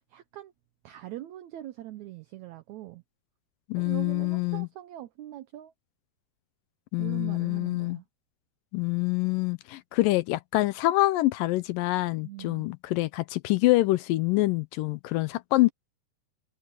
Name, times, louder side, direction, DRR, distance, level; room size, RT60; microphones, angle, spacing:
voice 1, 0.1-0.5 0.8-3.0 3.8-5.7 7.0-8.0 12.2-12.7, right 14 dB, 90° right, 1.6 m, -42 dB
voice 2, 3.7-4.7 6.9-8.0 8.7-15.7, left 19 dB, 80° left, 2.1 m, -26 dB
omnidirectional pair, 4.2 m